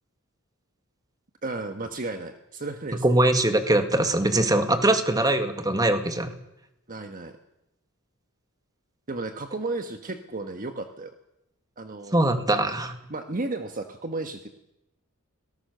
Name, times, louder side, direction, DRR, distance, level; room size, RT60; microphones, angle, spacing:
voice 1, 1.4-3.2 6.9-7.3 9.1-11.1 11.8-12.2 13.1-14.5, right 2 dB, 40° right, 6 dB, 1.3 m, -33 dB
voice 2, 3.0-6.3 12.1-12.9, right 1 dB, 20° right, 7 dB, 1.9 m, -22 dB
23.5 x 18.5 x 6.8 m, 0.87 s
head